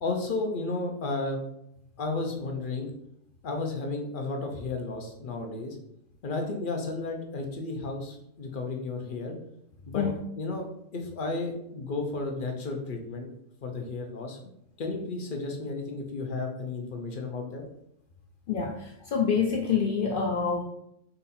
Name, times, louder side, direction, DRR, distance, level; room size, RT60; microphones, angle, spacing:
voice 1, 0.0-1.4 2.0-2.9 3.4-5.7 6.2-9.3 9.9-10.0 10.4-13.3 13.6-14.5 14.8-17.6, left 3 dB, 45° left, 2 dB, 0.7 m, -33 dB
voice 2, 18.5-18.8 19.1-20.6, left 6 dB, 75° left, 1 dB, 0.4 m, -26 dB
4.0 x 2.7 x 4.1 m, 0.75 s
omnidirectional pair, 1.4 m